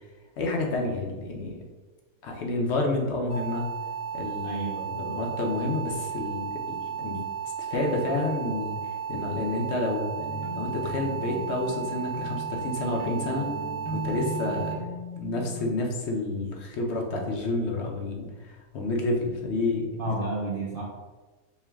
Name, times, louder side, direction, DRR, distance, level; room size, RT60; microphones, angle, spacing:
voice 1, 0.4-1.5 2.2-3.7 4.1-4.6 5.0-7.2 7.6-8.8 9.1-10.1 10.5-13.5 13.9-20.2, left 2 dB, 60° left, 1 dB, 0.9 m, -29 dB
sound 1, 3.3-14.7, right 7 dB, 85° left, 2.1 m, -34 dB
voice 2, 4.4-5.2 14.5-14.6 20.0-20.8, right 2 dB, 60° right, -4 dB, 0.5 m, -32 dB
sound 2, 10.2-15.7, right 2 dB, 35° left, 0.4 m, -38 dB
4.5 x 2.2 x 3.4 m, 1.3 s
omnidirectional pair, 1.5 m